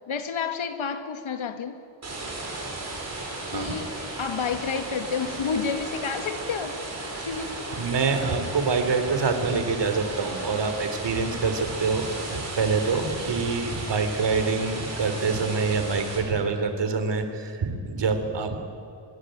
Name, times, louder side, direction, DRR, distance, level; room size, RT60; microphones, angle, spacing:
voice 1, 0.1-1.8 3.5-3.9 4.2-6.8 7.2-7.6, left 6 dB, 80° left, 7 dB, 2.3 m, -30 dB
sound 1, 2.0-16.2, right 2 dB, 35° right, 7.3 m, -35 dB
voice 2, 7.7-18.6, right 4 dB, 60° right, 8 dB, 3.3 m, -26 dB
24.5 x 23.0 x 9.1 m, 2.4 s
wide cardioid pair, 150°, 47 cm